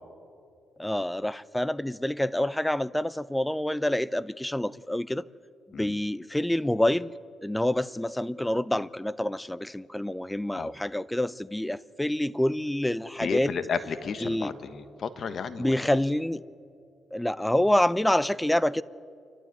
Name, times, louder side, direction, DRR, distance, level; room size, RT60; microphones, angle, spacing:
voice 1, 0.8-5.3 5.8-7.1 7.4-13.6 14.2-14.5 15.6-16.4 17.1-18.8, left 1 dB, 5° left, 19 dB, 0.5 m, -27 dB
voice 2, 13.2-15.7, left 6 dB, 50° left, 12 dB, 1.3 m, -32 dB
28.5 x 12.0 x 9.3 m, 2.5 s
cardioid pair, 90°, 0 cm